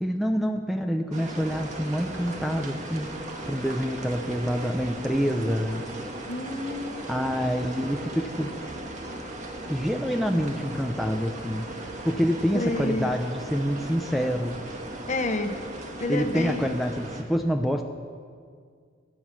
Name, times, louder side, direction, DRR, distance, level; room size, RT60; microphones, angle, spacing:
voice 1, 0.0-5.8 7.1-8.5 9.7-14.6 16.1-17.8, equal, ahead, 4 dB, 0.6 m, -27 dB
sound 1, 1.1-17.2, right 1 dB, 40° right, 1.7 m, -37 dB
voice 2, 6.3-7.1 12.5-13.2 15.1-15.6 16.0-16.8, left 2 dB, 40° left, 6 dB, 1.3 m, -29 dB
24.5 x 9.3 x 6.1 m, 2.1 s
head